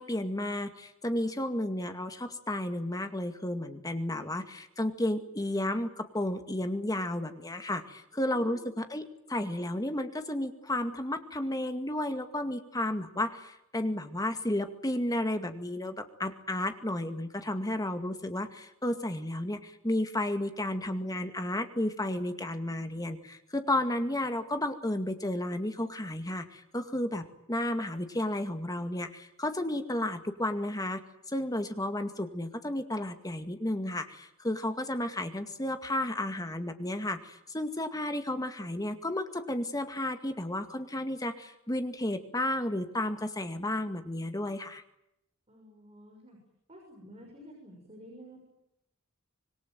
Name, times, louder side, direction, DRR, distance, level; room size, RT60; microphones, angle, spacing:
voice 1, 0.0-31.0 31.3-44.8, left 1 dB, 20° left, 8 dB, 2.1 m, -32 dB
voice 2, 8.1-8.7 45.5-46.4 46.7-48.4, equal, 30° right, 0 dB, 6.5 m, -51 dB
26.0 x 20.5 x 9.2 m, 0.82 s
head